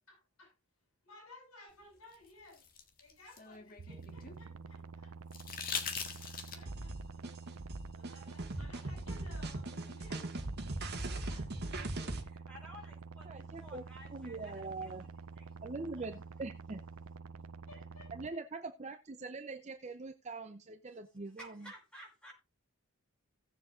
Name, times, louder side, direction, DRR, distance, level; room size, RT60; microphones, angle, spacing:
voice 1, 0.1-0.5 1.0-2.6 3.0-5.1 6.5-7.2 7.9-10.2 11.0-11.9 17.7-18.4, left 2 dB, 85° left, 7.7 m, -58 dB
sound 1, 2.1-4.4 5.3-6.8 8.5-8.6, left 6 dB, 40° left, 1.7 m, -41 dB
sound 2, 3.8-18.3, right 4 dB, 75° right, 0.6 m, -49 dB
sound 3, 6.7-12.2, right 2 dB, 50° right, 1.9 m, -39 dB
voice 2, 12.2-15.1 15.3-15.6 15.9-16.1 17.7-17.8 21.4-22.3, equal, 5° left, 4.9 m, -54 dB
voice 3, 13.3-13.8 14.1-15.1 15.6-16.8 18.1-21.7, right 3 dB, 30° right, 0.6 m, -43 dB
17.0 x 7.4 x 2.5 m
head